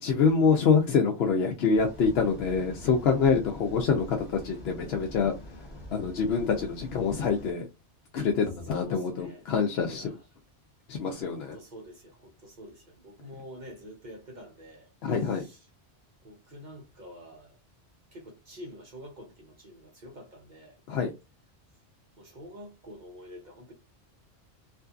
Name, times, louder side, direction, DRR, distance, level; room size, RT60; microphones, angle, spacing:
voice 1, 0.0-7.7 8.1-10.1 10.9-11.6 15.0-15.5 20.9-21.1, left 5 dB, 65° left, 0.8 m, -26 dB
sound 1, 1.7-7.5, equal, ahead, 1.7 m, -45 dB
voice 2, 8.7-9.4 9.9-10.2 11.3-14.9 15.4-15.6 16.2-17.5 18.1-20.8 22.2-23.7, equal, 45° right, 0.8 m, -47 dB
2.6 x 2.5 x 2.3 m
omnidirectional pair, 1.2 m